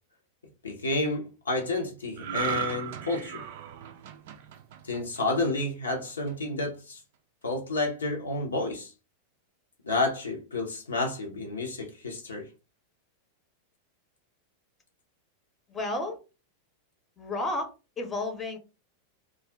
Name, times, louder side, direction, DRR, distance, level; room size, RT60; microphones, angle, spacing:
voice 1, 0.6-3.4 4.8-7.0 7.4-8.9 9.8-12.5, left 2 dB, 70° left, 0.7 m, -30 dB
sound 1, 2.2-5.6 6.1-6.3, right 9 dB, 50° right, 0.4 m, -36 dB
voice 2, 15.7-16.2 17.2-18.6, left 2 dB, 20° left, 0.8 m, -32 dB
2.4 x 2.3 x 3.3 m
figure-of-eight pair, 90°, 0 cm